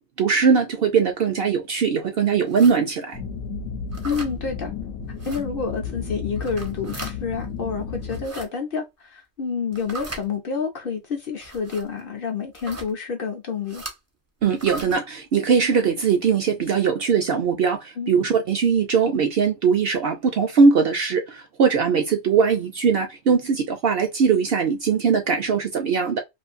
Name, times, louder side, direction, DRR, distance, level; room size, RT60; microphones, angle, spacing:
voice 1, 0.2-3.2 14.4-26.2, right 6 dB, 65° right, 0.6 m, -20 dB
sound 1, 2.5-2.8 3.9-4.3 5.2-5.4 6.4-7.1 8.0-8.5 9.7-10.2 11.4-11.8 12.5-12.9 13.7-14.0 14.5-14.9, right 2 dB, 20° right, 0.4 m, -36 dB
sound 2, 3.1-8.3, left 6 dB, 75° left, 1.0 m, -33 dB
voice 2, 4.0-4.7 5.2-13.8 18.0-18.2, left 5 dB, 55° left, 0.7 m, -29 dB
2.6 x 2.5 x 2.4 m
omnidirectional pair, 1.3 m